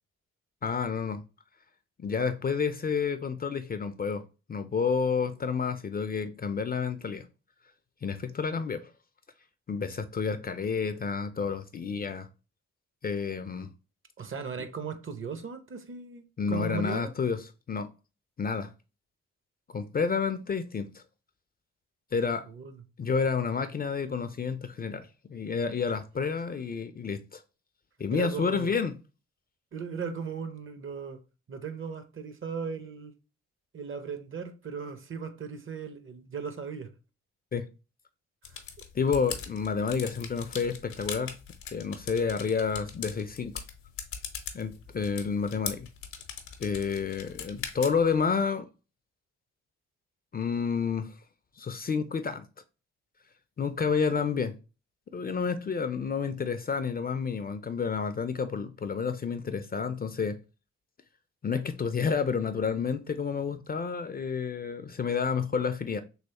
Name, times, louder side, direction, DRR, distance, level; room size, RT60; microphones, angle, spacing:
voice 1, 0.6-1.2 2.0-4.2 4.5-7.2 8.0-8.9 9.7-12.3 13.0-13.7 16.4-17.4 17.7-17.9 18.4-18.7 19.7-21.0 22.1-22.5 23.0-27.4 28.0-29.0 37.5-37.7 38.9-41.4 41.7-43.6 44.5-45.9 46.6-48.7 50.3-51.1 51.6-52.5 53.6-54.5 55.1-60.4 61.4-66.0, left 5 dB, 30° left, 0.4 m, -30 dB
voice 2, 14.2-17.1 22.4-22.8 28.1-28.7 29.7-31.2 31.5-33.1 33.7-36.9 38.5-38.6, right 5 dB, 40° right, 0.7 m, -37 dB
sound 1, 38.4-48.2, left 7 dB, 80° left, 0.7 m, -41 dB
3.2 x 3.0 x 2.8 m
supercardioid pair, 50°, 32 cm